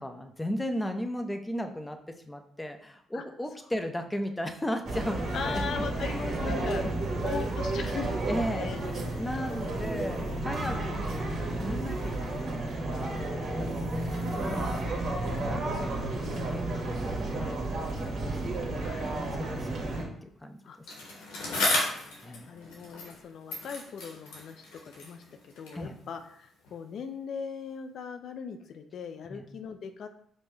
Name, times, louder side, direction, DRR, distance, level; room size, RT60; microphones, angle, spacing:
voice 1, 0.0-2.0 2.2-5.6 8.3-16.0 16.3-17.0 17.3-18.8 19.3-20.6 21.2-21.3 22.2-22.5 25.8-26.0 29.3-29.4, equal, 15° left, 6 dB, 0.5 m, -36 dB
sound 1, 4.8-20.0, right 2 dB, 55° right, 1.2 m, -32 dB
voice 2, 5.3-6.8 7.2-8.8 9.1-9.9 10.6-11.1 18.8-19.1 20.6-20.8 21.2-30.1, left 6 dB, 65° left, 7 dB, 0.3 m, -39 dB
Bicycle, 20.9-23.2 23.5-25.9 26.6-26.7, left 2 dB, 90° left, 1.2 m, -34 dB
5.1 x 2.1 x 3.2 m, 0.66 s
supercardioid pair, 65°, 0 cm